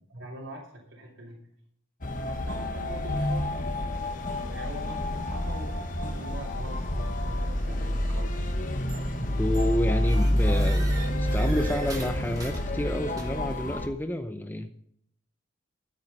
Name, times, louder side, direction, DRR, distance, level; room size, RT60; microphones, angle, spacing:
voice 1, 0.1-1.4 2.2-4.1 4.4-8.4, right 1 dB, 85° right, -6 dB, 3.5 m, -43 dB
sound 1, 2.0-13.9, left 1 dB, 40° left, 1.1 m, -28 dB
sound 2, 3.9-12.7, left 1 dB, 80° left, 2.1 m, -42 dB
sound 3, 8.9-9.2 9.5-13.6, right 3 dB, 20° right, 1.8 m, -44 dB
voice 2, 9.4-14.7, left 1 dB, 10° left, 7 dB, 0.7 m, -30 dB
12.5 x 8.9 x 5.4 m, 0.68 s
head